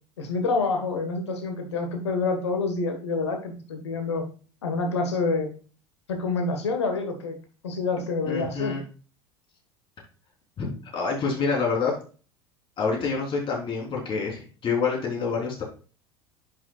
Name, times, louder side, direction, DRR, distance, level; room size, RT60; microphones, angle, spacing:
voice 1, 0.2-4.2 4.6-5.5 6.1-7.4 7.6-8.7, left 3 dB, 80° left, 5 dB, 1.5 m, -27 dB
voice 2, 8.3-8.8 10.6-12.0 12.8-15.6, left 5 dB, 35° left, -2 dB, 3.8 m, -27 dB
10.5 x 6.0 x 2.4 m, 0.38 s
figure-of-eight pair, 75°, 14 cm